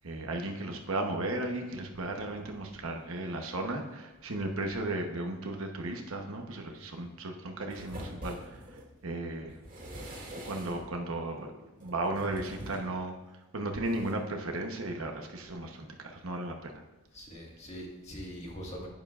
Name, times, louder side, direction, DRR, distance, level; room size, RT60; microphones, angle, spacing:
voice 1, 0.0-8.6 9.0-9.5 10.4-13.1 13.5-16.7, right 2 dB, 65° right, 3 dB, 1.0 m, -35 dB
voice 2, 2.1-2.6 6.7-7.1 17.1-18.9, equal, 30° left, -2 dB, 1.8 m, -44 dB
sound 1, 7.7-8.9 9.5-11.0 11.8-12.9 13.9-14.1, equal, 35° right, 2.5 m, -44 dB
10.5 x 9.6 x 2.5 m, 1.1 s
head